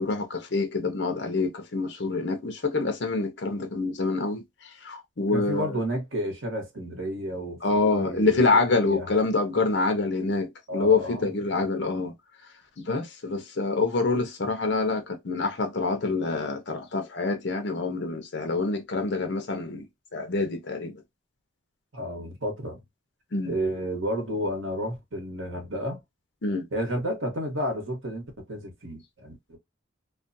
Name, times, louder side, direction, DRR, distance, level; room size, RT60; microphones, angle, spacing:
voice 1, 0.0-5.8 7.6-12.1 12.8-19.9 20.1-21.0 23.3-23.5 26.4-26.7, left 3 dB, 60° left, 0.6 m, -26 dB
voice 2, 5.3-9.1 10.7-11.3 21.9-22.8 23.5-26.0 26.7-29.6, equal, 85° right, 1.1 m, -31 dB
2.5 x 2.2 x 2.5 m
head